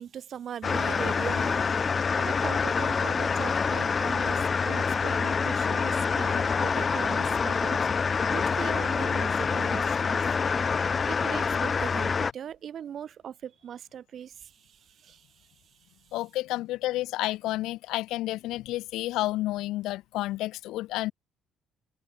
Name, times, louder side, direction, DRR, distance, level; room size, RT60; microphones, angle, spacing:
voice 1, 0.0-1.7 2.1-7.8 8.3-10.2 11.1-15.3, right 9 dB, 45° right, 2.4 m, -40 dB
sound 1, 0.6-12.3, left 5 dB, 25° left, 0.4 m, -26 dB
voice 2, 16.1-21.1, left 16 dB, 80° left, 2.4 m, -30 dB
cardioid pair, 155°, 0 cm